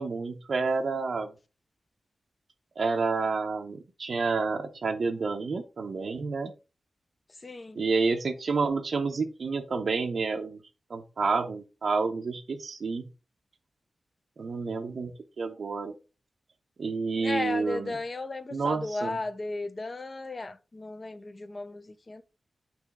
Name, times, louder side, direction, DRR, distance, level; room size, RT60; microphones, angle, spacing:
voice 1, 0.0-1.3 2.8-6.5 7.7-10.6 10.9-13.0 14.4-15.9 16.8-18.0 18.5-19.2, right 4 dB, 50° right, 0.8 m, -29 dB
voice 2, 7.4-7.8 17.2-22.2, left 2 dB, 30° left, 0.5 m, -35 dB
8.9 x 3.1 x 3.5 m
wide cardioid pair, 170°, 0 cm